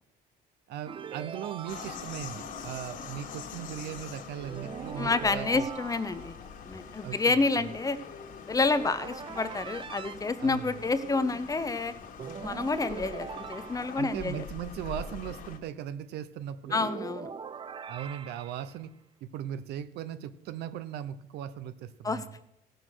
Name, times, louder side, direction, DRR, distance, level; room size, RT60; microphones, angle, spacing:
voice 1, 0.7-5.7 7.0-7.7 10.4-10.7 14.0-16.8 17.9-18.9 19.2-22.3, right 10 dB, 75° right, 13 dB, 0.8 m, -38 dB
sound 1, 0.9-2.4 4.4-6.5 8.7-10.2 12.2-14.3 16.6-18.8, right 6 dB, 30° right, 0.5 m, -42 dB
sound 2, 1.7-15.6, left 6 dB, 55° left, 1.7 m, -44 dB
voice 2, 5.0-6.3 6.6-8.0 8.5-11.9 12.4-14.5 16.7-17.3 22.0-22.2, left 3 dB, 20° left, 12 dB, 0.8 m, -29 dB
16.5 x 6.7 x 6.2 m, 0.83 s
cardioid pair, 110°, 17 cm